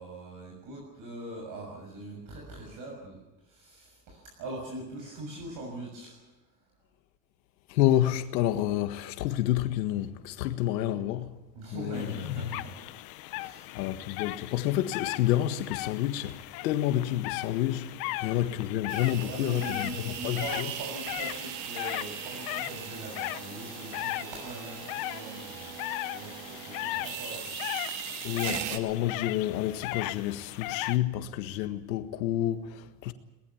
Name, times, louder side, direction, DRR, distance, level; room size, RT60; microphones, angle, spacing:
voice 1, 0.0-6.2 11.5-12.8 13.3-13.8 18.1-18.4 19.2-25.8 26.1-27.6, right 2 dB, 40° right, 6.7 m, -42 dB
voice 2, 7.7-11.4 11.7-12.3 13.7-18.0 18.2-20.7 28.2-33.1, left 13 dB, 90° left, 1.7 m, -29 dB
sound 1, 11.9-31.0, left 18 dB, 45° left, 0.9 m, -38 dB
sound 2, 18.9-28.8, right 11 dB, 75° right, 2.4 m, -39 dB
22.5 x 20.0 x 7.2 m
supercardioid pair, 160°, 49 cm